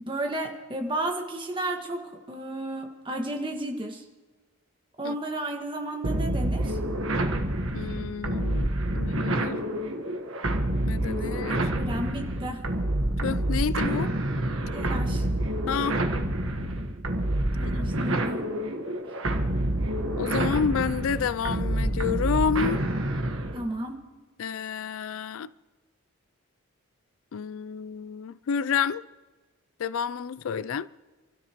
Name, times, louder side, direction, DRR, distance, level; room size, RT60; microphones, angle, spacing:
voice 1, 0.1-4.0 5.0-6.8 11.8-12.6 14.7-15.2 17.5-18.4 23.5-24.0, right 1 dB, 20° right, 1.7 m, -33 dB
sound 1, 6.0-23.6, right 1 dB, 60° right, 1.4 m, -28 dB
voice 2, 7.7-9.6 10.9-11.7 13.2-14.1 15.7-16.0 17.6-17.9 20.2-22.8 24.4-25.5 27.3-29.0 29.8-30.9, left 6 dB, 65° left, 0.3 m, -29 dB
29.0 x 13.5 x 3.1 m
head